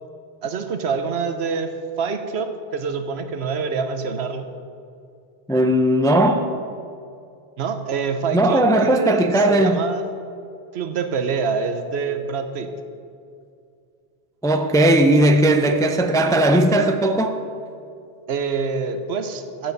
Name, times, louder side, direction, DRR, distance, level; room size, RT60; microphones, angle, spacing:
voice 1, 0.4-4.5 7.6-10.0 10.7-12.7 18.3-19.7, right 5 dB, 85° right, 1.0 m, -26 dB
voice 2, 5.5-6.5 8.3-9.8 14.4-17.4, right 1 dB, 5° left, 0.3 m, -17 dB
15.5 x 7.5 x 4.0 m
omnidirectional pair, 1.1 m